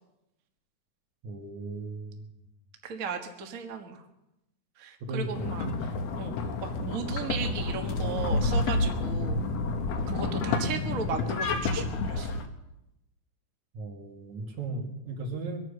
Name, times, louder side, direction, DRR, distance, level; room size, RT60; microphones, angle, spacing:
voice 1, 1.2-2.2 5.0-5.7 13.7-15.6, right 3 dB, 70° right, 3 dB, 3.3 m, -36 dB
voice 2, 2.8-4.0 4.8-5.7 6.2-9.4 10.1-12.3, right 6 dB, 40° right, 4 dB, 1.3 m, -36 dB
sound 1, 5.3-12.5, left 3 dB, 65° left, 2.2 m, -29 dB
23.0 x 9.4 x 6.7 m, 0.92 s
omnidirectional pair, 3.4 m